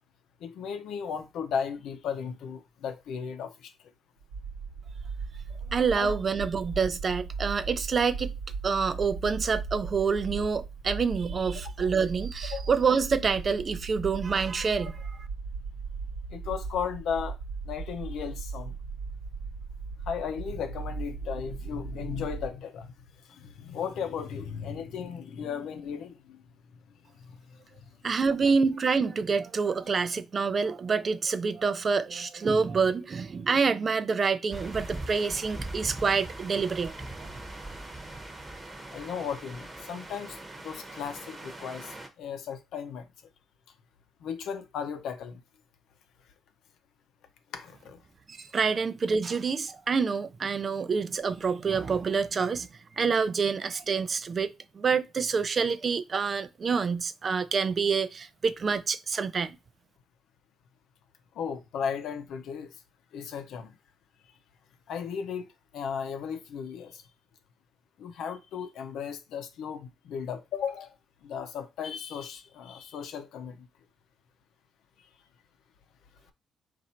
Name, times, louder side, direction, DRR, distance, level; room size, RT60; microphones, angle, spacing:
voice 1, 0.4-3.7 6.0-6.2 11.8-11.9 12.5-12.7 16.3-17.4 17.6-18.7 20.0-22.9 23.3-26.4 38.9-43.1 44.2-45.4 47.5-48.0 61.3-62.7 63.1-63.7 64.9-67.0 68.0-70.9 71.2-73.7, left 7 dB, 80° left, 0.7 m, -35 dB
sound 1, 4.2-22.5, right 4 dB, 90° right, 1.0 m, -38 dB
voice 2, 5.7-8.3 8.6-15.2 28.0-36.9 48.3-52.7 53.0-59.6, right 5 dB, 40° right, 0.4 m, -27 dB
sound 2, 34.5-42.1, right 2 dB, 20° right, 1.0 m, -41 dB
4.2 x 2.6 x 4.3 m
cardioid pair, 90°, 0 cm